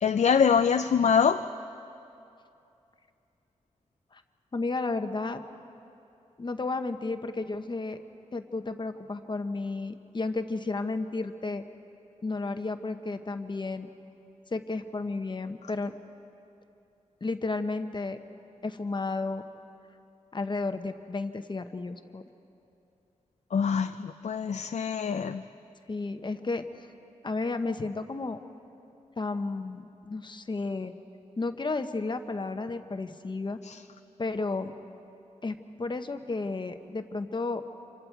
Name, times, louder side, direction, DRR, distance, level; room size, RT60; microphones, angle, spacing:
voice 1, 0.0-1.4 23.5-25.4 33.7-33.8, left 6 dB, 70° left, 8 dB, 0.5 m, -24 dB
voice 2, 4.5-5.4 6.4-8.0 8.3-11.6 12.2-13.9 14.5-15.9 17.2-18.2 18.6-19.4 20.3-22.2 25.9-26.6 27.2-28.4 29.2-30.9 31.4-33.6 34.2-34.7 35.4-37.6, left 3 dB, 40° left, 7 dB, 0.9 m, -32 dB
27.5 x 25.0 x 4.6 m, 2.7 s
wide cardioid pair, 105°, 12 cm